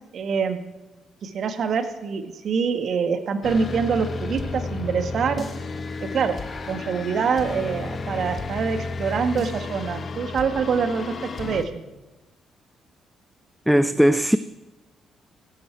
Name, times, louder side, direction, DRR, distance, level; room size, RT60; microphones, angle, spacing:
voice 1, 0.1-0.6 1.2-5.4 6.1-6.4 6.7-11.8, right 6 dB, 60° right, 1.7 m, -25 dB
sound 1, 3.4-11.6, left 3 dB, 45° left, 1.5 m, -32 dB
voice 2, 13.7-14.4, equal, 5° right, 0.6 m, -18 dB
16.5 x 13.0 x 4.7 m
hypercardioid pair, 45°, 0 cm